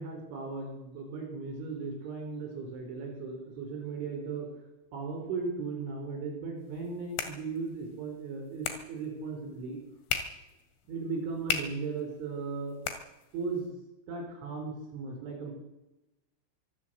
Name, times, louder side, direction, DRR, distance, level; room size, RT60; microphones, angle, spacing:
voice 1, 0.0-4.5 4.9-9.8 10.9-12.8 13.3-13.8 14.1-15.5, right 4 dB, 65° right, 2 dB, 6.6 m, -37 dB
sound 1, 6.6-13.7, left 7 dB, 70° left, 4.2 m, -40 dB
24.5 x 15.0 x 7.7 m, 0.95 s
omnidirectional pair, 6.0 m